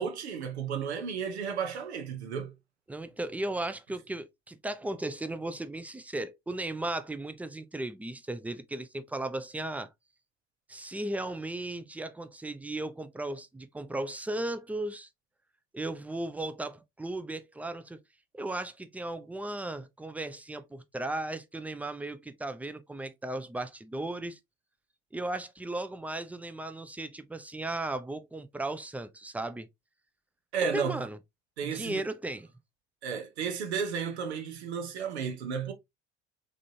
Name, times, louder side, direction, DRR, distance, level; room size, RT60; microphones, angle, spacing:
voice 1, 0.0-2.5 30.5-31.0 31.6-32.0 33.0-35.7, right 6 dB, 75° right, 0.9 m, -33 dB
voice 2, 2.9-9.9 10.7-15.1 15.7-18.0 18.3-24.4 25.1-29.7 30.7-31.2 31.6-32.5, right 2 dB, 5° right, 0.5 m, -36 dB
3.7 x 3.3 x 2.7 m
figure-of-eight pair, 60°, 33 cm